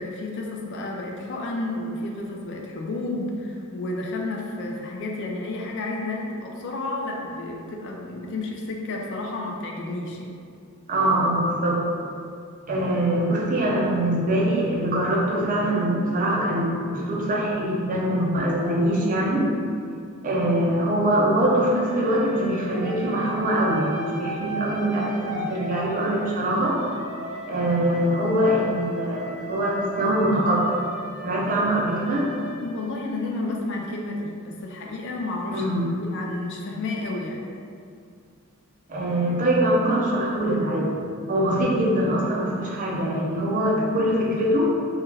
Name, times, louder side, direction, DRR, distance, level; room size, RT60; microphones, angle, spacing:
voice 1, 0.0-10.3 32.6-35.7 36.0-37.5, left 2 dB, 55° left, 0 dB, 0.4 m, -31 dB
voice 2, 10.9-11.9 12.7-19.5 20.2-26.8 27.5-30.8 31.2-32.3 35.5-35.9 38.9-40.9 41.3-44.7, right 1 dB, 40° right, -4 dB, 0.4 m, -23 dB
sound 1, 21.7-33.5, right 1 dB, 25° left, 0.8 m, -37 dB
2.3 x 2.2 x 3.2 m, 2.4 s
head